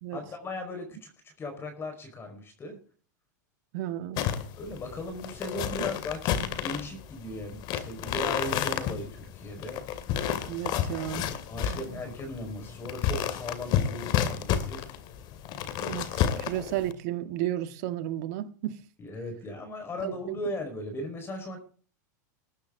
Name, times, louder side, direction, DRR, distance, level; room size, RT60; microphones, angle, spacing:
voice 1, 0.1-2.8 4.6-9.8 11.5-14.8 19.0-21.6, left 1 dB, 25° left, 5.0 m, -37 dB
voice 2, 3.7-4.3 10.5-11.3 11.6-12.0 15.8-18.8 20.0-20.4, right 13 dB, 65° right, 1.7 m, -33 dB
sound 1, 4.2-16.9, left 9 dB, 50° left, 2.5 m, -31 dB
20.5 x 10.0 x 3.8 m
hypercardioid pair, 115°, 10 cm